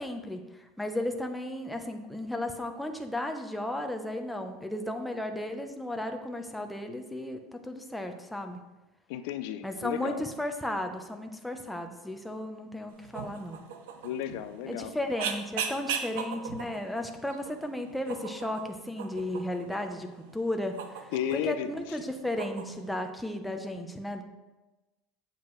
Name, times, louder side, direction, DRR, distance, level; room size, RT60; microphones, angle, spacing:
voice 1, 0.0-8.6 9.6-13.6 14.7-24.2, left 1 dB, 5° left, 4 dB, 0.8 m, -34 dB
voice 2, 9.1-10.2 14.0-14.9 21.1-22.0, left 11 dB, 75° left, 11 dB, 0.4 m, -33 dB
Barking Squirrel in the City, 12.9-23.0, right 7 dB, 85° right, 0.8 m, -40 dB
8.3 x 7.5 x 3.2 m, 1.1 s
supercardioid pair, 125°, 0 cm